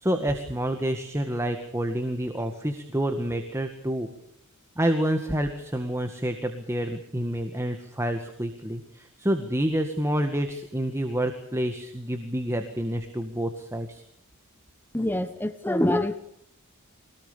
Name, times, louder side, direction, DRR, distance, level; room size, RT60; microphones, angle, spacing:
voice 1, 0.0-4.1 4.8-14.0, right 1 dB, 15° right, 5 dB, 1.9 m, -28 dB
voice 2, 14.9-16.2, left 1 dB, 10° left, 9 dB, 1.1 m, -25 dB
25.5 x 19.5 x 7.0 m, 0.77 s
head